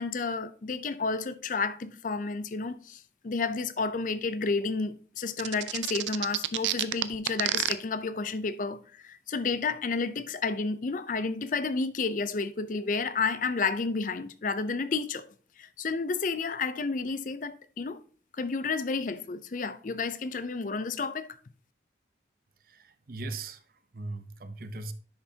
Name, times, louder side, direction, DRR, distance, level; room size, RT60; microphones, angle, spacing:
voice 1, 0.0-15.3 15.6-18.0 18.4-21.3, left 4 dB, 45° left, 0.5 m, -31 dB
sound 1, 5.4-7.7, right 13 dB, 85° right, 0.5 m, -28 dB
voice 2, 22.6-24.9, right 2 dB, 55° right, 0.7 m, -39 dB
10.0 x 5.7 x 2.8 m
head